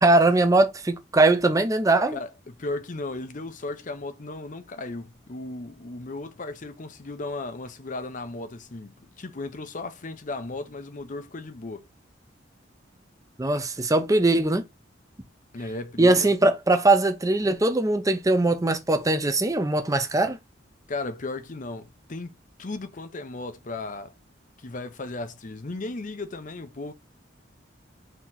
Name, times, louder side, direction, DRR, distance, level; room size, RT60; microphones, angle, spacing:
voice 1, 0.0-2.2 13.4-14.6 16.0-20.4, right 2 dB, 20° right, 0.7 m, -21 dB
voice 2, 2.1-11.9 15.5-16.4 20.9-22.3 22.6-24.1 24.6-26.9, left 2 dB, 45° left, 0.7 m, -35 dB
4.3 x 3.0 x 3.8 m
head